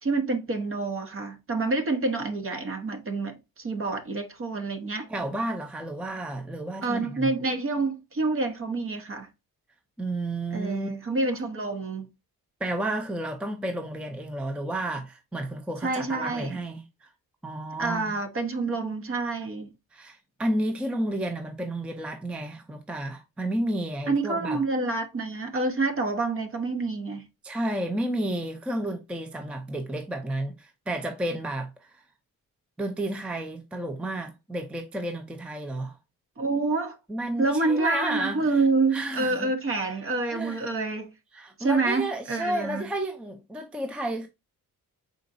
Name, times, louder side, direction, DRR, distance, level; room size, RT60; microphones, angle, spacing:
voice 1, 0.0-5.1 6.8-9.3 10.5-12.1 15.8-16.6 17.8-19.7 24.1-27.2 36.4-37.0 37.4-41.1 41.6-42.9, right 3 dB, 40° right, 0.9 m, -27 dB
voice 2, 5.1-7.3 10.0-10.9 12.6-17.1 17.4-18.1 19.9-24.6 27.4-32.0 32.8-36.0 37.1-38.5 38.9-39.5 40.3-40.7 41.3-44.3, right 1 dB, 5° right, 0.5 m, -31 dB
5.0 x 3.9 x 2.5 m
wide cardioid pair, 155°, 35 cm